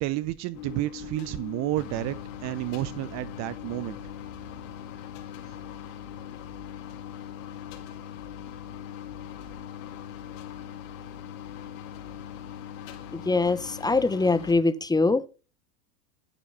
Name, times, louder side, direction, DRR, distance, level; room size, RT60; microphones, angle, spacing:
voice 1, 0.0-4.0, right 17 dB, 35° right, 0.9 m, -31 dB
sound 1, 0.5-14.5, left 9 dB, 55° left, 3.7 m, -41 dB
voice 2, 13.1-15.2, left 3 dB, 10° left, 1.3 m, -23 dB
17.0 x 8.2 x 7.1 m
figure-of-eight pair, 90°, 46 cm